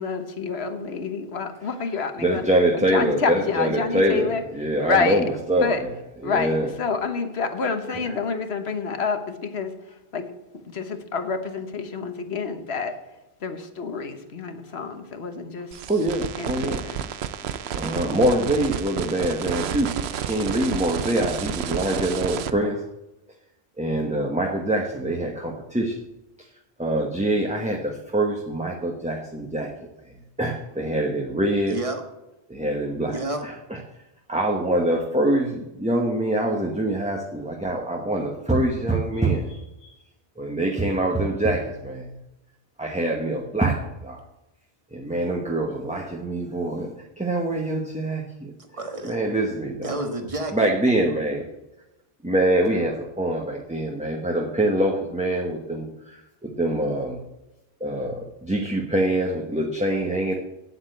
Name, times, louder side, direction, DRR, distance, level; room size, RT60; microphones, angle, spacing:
voice 1, 0.0-2.4 2.7-4.4 4.8-5.2 5.6-5.8 6.2-10.3 10.7-12.9 13.4-15.8 16.4-17.0, left 5 dB, 80° left, 8 dB, 1.4 m, -28 dB
voice 2, 2.2-5.7 6.2-6.7 7.9-8.2 15.9-17.1 17.5-22.9 23.8-26.0 26.8-29.7 30.0-31.8 32.5-33.2 33.4-33.8 34.3-39.9 40.4-42.2 42.8-44.2 44.9-48.5 49.0-50.0 50.5-51.5 52.2-57.2 57.8-60.3, right 1 dB, 5° right, 0 dB, 1.0 m, -25 dB
sound 1, 15.7-22.5, right 8 dB, 80° right, 0.9 m, -31 dB
voice 3, 31.7-32.0 33.1-33.4 48.7-49.2 49.8-50.7, right 2 dB, 30° right, 5 dB, 1.6 m, -30 dB
8.9 x 8.0 x 7.9 m, 0.95 s
omnidirectional pair, 1.1 m